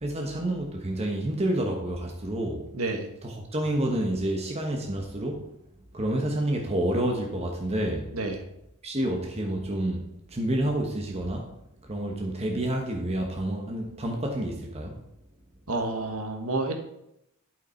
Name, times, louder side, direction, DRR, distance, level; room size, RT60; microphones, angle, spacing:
voice 1, 0.0-2.6 3.2-5.4 5.9-8.1 8.8-10.0 10.3-11.5 11.9-15.0, right 1 dB, 30° right, 1 dB, 1.1 m, -29 dB
voice 2, 2.7-3.1 8.1-8.4 15.7-16.8, right 2 dB, 70° right, 4 dB, 1.5 m, -29 dB
11.5 x 5.8 x 4.5 m, 0.83 s
head